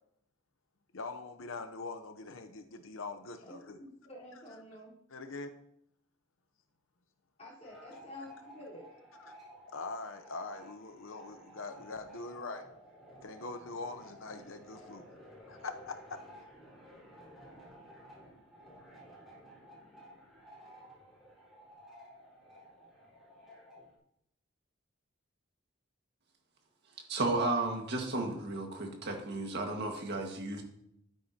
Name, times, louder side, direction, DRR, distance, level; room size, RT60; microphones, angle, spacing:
voice 1, 0.9-3.8 5.1-5.5 9.2-9.3 9.7-12.6 13.2-15.0 15.5-16.2, left 3 dB, 70° left, 7 dB, 0.8 m, -43 dB
voice 2, 3.4-4.9 7.4-8.8, left 1 dB, 30° left, -6 dB, 4.0 m, -49 dB
sound 1, 7.6-23.9, equal, ahead, 4.5 m, -54 dB
voice 3, 27.1-30.6, right 2 dB, 55° right, 2 dB, 1.7 m, -33 dB
11.5 x 9.4 x 2.9 m, 0.75 s
head